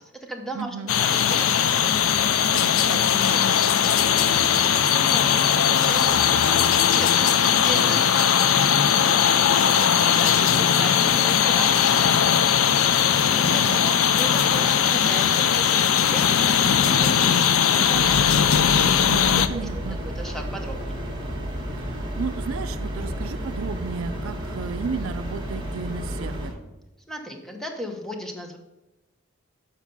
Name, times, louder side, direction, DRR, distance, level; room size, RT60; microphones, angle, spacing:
voice 1, 0.0-1.9 2.9-8.5 9.3-12.3 13.1-18.5 19.3-19.7 20.2-21.0 27.1-28.6, right 1 dB, ahead, 3 dB, 0.9 m, -36 dB
voice 2, 0.5-0.9 2.5-3.0 13.4-13.8 19.1-20.0 21.9-26.5, right 5 dB, 85° right, 11 dB, 0.4 m, -33 dB
sound 1, 0.9-19.5, left 8 dB, 90° left, 0.5 m, -19 dB
sound 2, 17.9-26.5, equal, 25° right, 1.8 m, -32 dB
7.3 x 5.6 x 5.4 m, 1.0 s
head